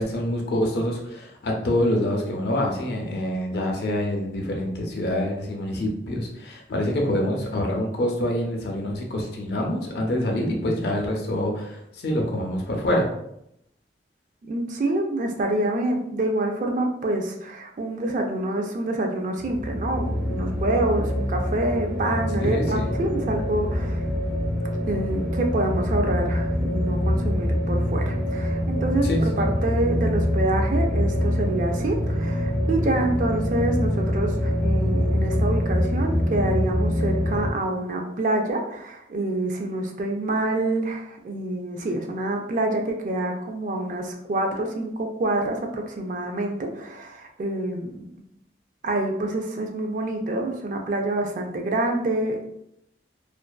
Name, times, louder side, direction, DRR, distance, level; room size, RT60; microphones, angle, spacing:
voice 1, 0.0-13.1 22.4-23.0 29.0-29.5, left 1 dB, 60° left, 0 dB, 0.5 m, -26 dB
voice 2, 14.5-24.0 24.9-48.2 48.8-52.4, right 2 dB, 45° right, 2 dB, 0.3 m, -27 dB
sound 1, 19.4-37.5, equal, 5° right, 0.6 m, -25 dB
2.5 x 2.2 x 2.2 m, 0.77 s
head